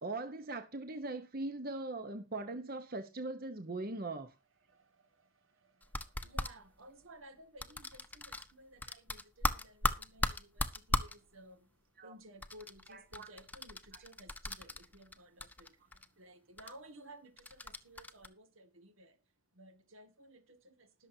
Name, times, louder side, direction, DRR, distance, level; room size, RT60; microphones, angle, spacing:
voice 1, 0.0-4.3 12.0-12.1 12.9-13.3, right 2 dB, 45° right, 1.0 m, -40 dB
voice 2, 4.6-21.1, right 1 dB, 85° right, 2.3 m, -57 dB
sound 1, 5.8-6.5 7.6-8.5 8.8-11.1 12.4-15.1 15.4-16.1 16.6-16.7 17.4-18.3, left 2 dB, 10° left, 0.8 m, -36 dB
20.0 x 6.9 x 2.8 m
head